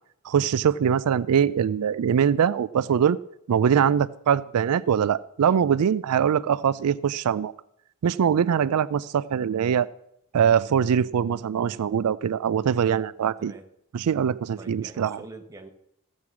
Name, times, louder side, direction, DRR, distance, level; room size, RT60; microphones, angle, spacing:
voice 1, 0.2-3.2 3.5-7.5 8.0-9.9 10.3-13.5 13.9-15.2, right 8 dB, 90° right, 16 dB, 0.4 m, -22 dB
voice 2, 14.6-15.7, right 2 dB, 15° right, 4 dB, 1.3 m, -44 dB
15.5 x 6.3 x 7.1 m, 0.77 s
head